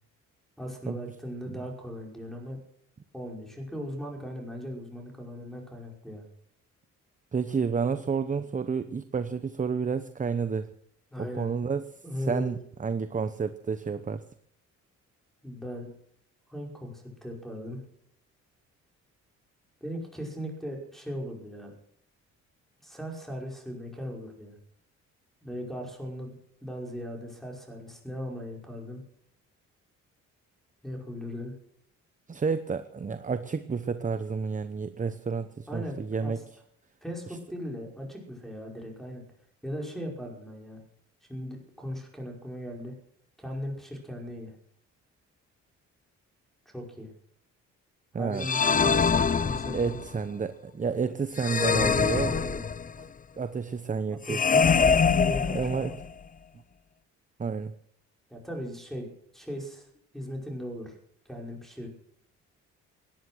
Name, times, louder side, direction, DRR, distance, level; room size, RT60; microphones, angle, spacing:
voice 1, 0.6-2.6 3.1-6.3 11.1-11.5 12.0-12.6 15.4-15.9 16.5-17.8 19.8-21.7 22.8-24.6 25.4-29.0 30.8-31.5 35.7-36.3 37.0-39.2 39.6-40.8 41.3-42.9 43.4-44.6 46.7-47.1 48.2-49.8 52.2-52.6 54.2-56.0 58.3-59.9 60.1-61.0 61.3-61.9, equal, ahead, 1 dB, 5.3 m, -38 dB
voice 2, 7.3-10.7 11.2-11.8 12.2-14.2 32.3-36.4 48.1-48.5 49.7-52.4 53.0-53.1 53.4-54.6 55.5-55.9 57.4-57.7, right 5 dB, 25° right, 11 dB, 0.8 m, -30 dB
sound 1, 48.4-50.1 51.4-53.0 54.3-56.1, left 6 dB, 25° left, 0.6 m, -24 dB
17.5 x 11.0 x 6.3 m, 0.68 s
cardioid pair, 90°, 30 cm